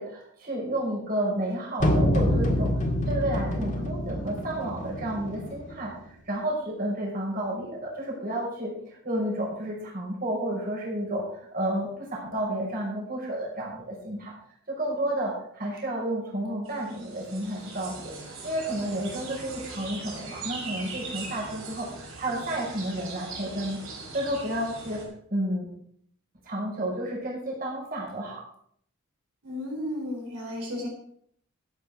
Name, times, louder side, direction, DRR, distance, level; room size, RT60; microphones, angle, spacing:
voice 1, 0.0-2.7 3.1-14.3 14.7-18.1 18.4-23.8 24.1-25.0 25.3-25.7 26.4-28.4, right 1 dB, 40° right, -3 dB, 5.5 m, -31 dB
sound 1, 1.8-5.8, left 1 dB, 35° left, 1.9 m, -26 dB
sound 2, 16.7-25.0, right 3 dB, 70° right, 6.0 m, -40 dB
voice 2, 29.4-30.9, left 1 dB, 90° right, 0 dB, 3.9 m, -33 dB
15.0 x 9.0 x 5.0 m, 0.67 s
head